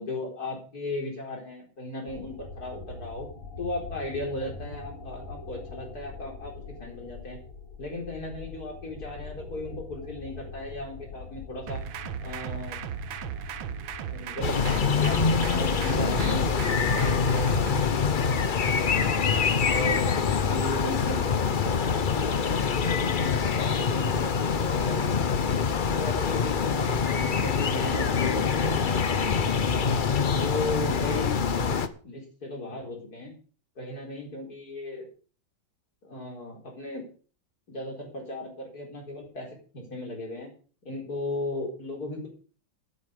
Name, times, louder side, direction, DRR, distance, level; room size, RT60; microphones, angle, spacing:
voice 1, 0.0-3.3 3.6-6.5 6.8-7.4 7.8-11.8 12.2-12.8 14.0-14.6 14.9-18.4 18.7-19.2 19.6-25.3 25.9-29.9 30.3-33.3 33.8-35.1 36.0-37.1 37.7-39.5 39.7-40.5 40.8-42.3, left 2 dB, 50° left, 1 dB, 4.7 m, -36 dB
sound 1, 2.1-18.3, left 4 dB, 25° left, 3.8 m, -44 dB
sound 2, 11.7-17.9, right 10 dB, 80° right, 1.7 m, -36 dB
sound 3, 14.4-31.9, left 6 dB, 80° left, 0.4 m, -25 dB
12.5 x 11.0 x 5.1 m, 0.40 s
omnidirectional pair, 2.1 m